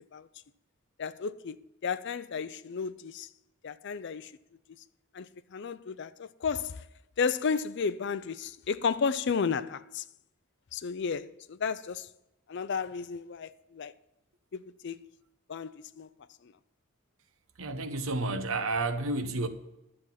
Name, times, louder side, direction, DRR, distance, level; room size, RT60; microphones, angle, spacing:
voice 1, 1.0-3.3 3.6-4.3 4.7-4.8 5.1-6.8 7.2-10.0 10.7-12.1 12.5-13.9 14.5-15.1 15.5-16.1 16.4-16.5, left 5 dB, 55° left, 0.5 m, -33 dB
voice 2, 17.6-19.5, right 2 dB, 70° right, 1.1 m, -31 dB
11.0 x 7.8 x 5.7 m
head